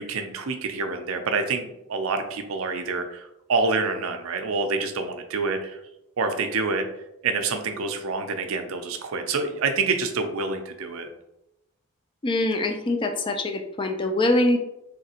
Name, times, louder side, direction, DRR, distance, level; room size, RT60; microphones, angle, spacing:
voice 1, 0.0-5.8 6.2-6.9 7.2-11.1, right 4 dB, 70° right, 6 dB, 0.4 m, -27 dB
voice 2, 12.2-14.6, left 1 dB, 25° left, 5 dB, 0.3 m, -23 dB
3.3 x 2.8 x 2.8 m, 0.86 s
head